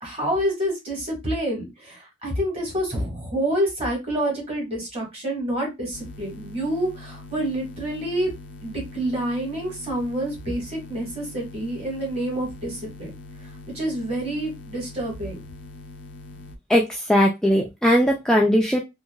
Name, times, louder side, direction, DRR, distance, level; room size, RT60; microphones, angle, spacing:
voice 1, 0.0-8.3 8.6-13.1 13.7-15.4, right 1 dB, 35° right, -1 dB, 1.7 m, -27 dB
sound 1, 5.9-16.6, left 2 dB, 75° left, 0.4 m, -42 dB
voice 2, 16.7-18.8, equal, 5° left, -1 dB, 0.3 m, -19 dB
3.0 x 2.5 x 2.3 m, 0.22 s
head